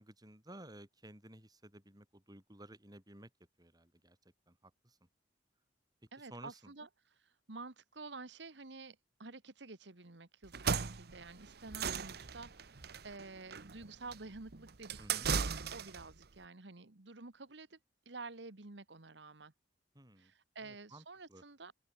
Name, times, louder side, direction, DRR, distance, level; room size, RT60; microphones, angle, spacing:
voice 1, 0.0-3.3 3.6-4.2 4.5-5.0 6.3-6.7 15.0-15.3 20.0-20.3 20.6-21.0 21.3-21.4, right 1 dB, 20° right, 7.2 m, -55 dB
voice 2, 6.1-17.8 18.0-19.5 20.2-21.7, right 3 dB, 75° right, 1.6 m, -50 dB
sound 1, 10.4-16.1, right 6 dB, 60° right, 1.0 m, -37 dB
open air
head